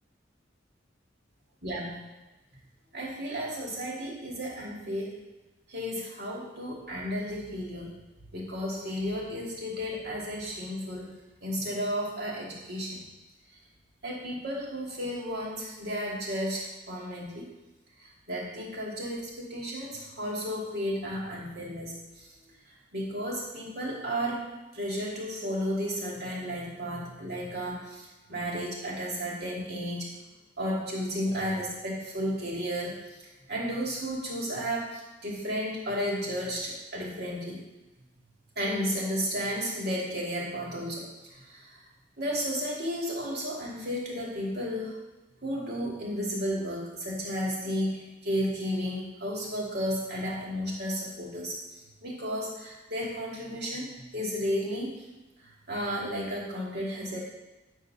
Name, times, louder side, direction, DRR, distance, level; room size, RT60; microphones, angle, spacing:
voice 1, 1.6-2.0 2.9-5.2 5.7-8.0 8.3-11.1 11.4-13.0 14.0-17.5 18.0-22.3 22.9-24.5 24.7-30.1 30.6-32.9 33.5-37.6 38.6-41.8 42.2-45.0 45.4-51.6 52.0-54.9 55.7-57.2, equal, 60° right, -3 dB, 2.9 m, -33 dB
9.6 x 4.9 x 6.9 m, 1.1 s
head